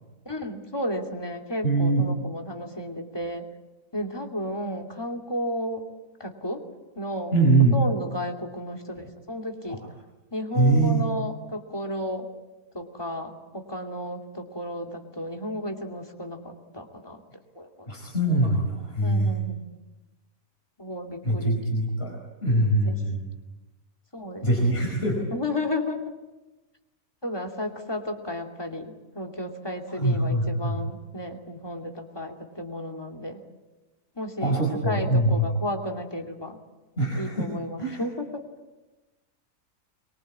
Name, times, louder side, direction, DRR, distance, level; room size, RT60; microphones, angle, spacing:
voice 1, 0.2-3.4 3.9-5.9 6.2-6.6 6.9-7.3 7.7-9.8 10.3-12.3 12.7-17.2 17.6-17.9 19.0-19.6 20.8-21.6 22.8-23.0 24.1-24.8 25.3-26.0 27.2-33.4 34.2-34.6 34.8-36.6 37.2-38.4, left 1 dB, 15° left, 3 dB, 2.7 m, -33 dB
voice 2, 1.6-2.1 7.3-7.8 10.5-11.0 17.9-19.3 21.2-23.2 24.4-25.2 29.9-30.8 34.4-35.5 37.0-37.5 37.8-38.0, right 2 dB, 40° left, -1 dB, 5.3 m, -23 dB
24.5 x 22.5 x 8.7 m, 1.1 s
omnidirectional pair, 1.6 m